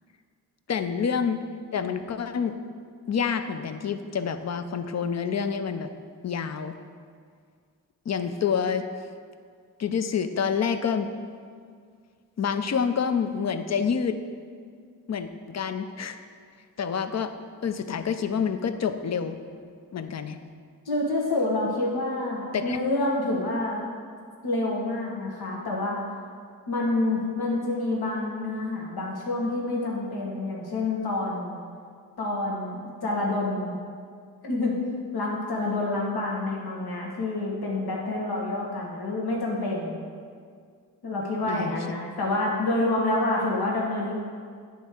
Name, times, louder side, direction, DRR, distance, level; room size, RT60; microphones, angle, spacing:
voice 1, 0.7-1.4 1.7-2.5 3.1-5.9 6.2-6.8 8.1-8.8 9.8-11.1 12.4-14.2 15.1-16.2 16.8-17.3 17.6-19.4 19.9-20.4 22.5-22.8 41.5-41.8, left 6 dB, 45° left, 9 dB, 0.5 m, -27 dB
voice 2, 20.8-23.8 24.4-26.0 26.7-31.6 32.2-33.8 34.4-34.7 35.1-40.0 41.0-44.1, left 2 dB, 75° left, -2 dB, 1.2 m, -28 dB
9.3 x 3.5 x 4.4 m, 2.1 s
cardioid pair, 40°, 38 cm